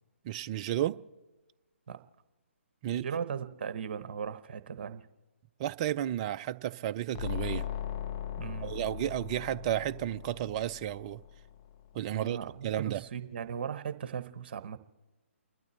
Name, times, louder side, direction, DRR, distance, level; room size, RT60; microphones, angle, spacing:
voice 1, 0.2-1.0 2.8-3.1 5.6-7.6 8.6-11.2 11.9-12.4 12.6-13.0, right 12 dB, 30° right, 0.4 m, -32 dB
voice 2, 3.0-5.1 8.4-8.8 12.1-14.8, right 7 dB, 45° right, 1.0 m, -38 dB
sound 1, 7.2-11.8, left 10 dB, 30° left, 0.5 m, -39 dB
29.5 x 12.0 x 3.2 m
figure-of-eight pair, 140°, 7 cm